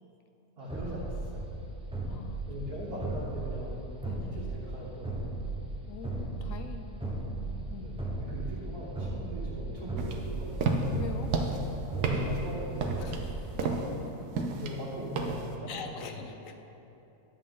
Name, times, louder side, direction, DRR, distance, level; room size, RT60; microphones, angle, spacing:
voice 1, 0.6-1.5 2.4-3.8 4.1-5.4 7.8-10.6 11.9-13.3 14.5-16.3, equal, 70° right, -9 dB, 2.0 m, -40 dB
sound 1, 0.7-13.8, right 2 dB, 5° right, 0.5 m, -37 dB
voice 2, 2.1-2.4 4.0-4.3 5.9-7.9 10.9-11.3 13.0-14.5 15.7-16.6, left 6 dB, 70° left, 5 dB, 0.9 m, -44 dB
sound 2, 10.0-15.5, right 3 dB, 85° right, 1.3 m, -32 dB
10.5 x 7.5 x 3.8 m, 3.0 s
omnidirectional pair, 1.6 m